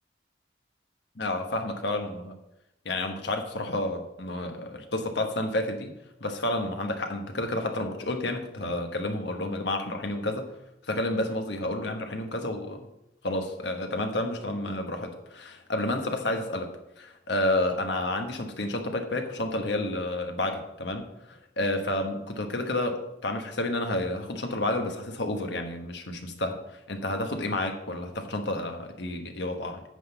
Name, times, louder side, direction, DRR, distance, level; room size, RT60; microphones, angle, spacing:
voice 1, 1.2-2.4 2.8-5.9 6.2-10.5 10.9-12.8 13.2-16.7 17.0-29.8, left 1 dB, 65° left, 5 dB, 1.2 m, -30 dB
9.4 x 3.9 x 6.9 m, 0.87 s
head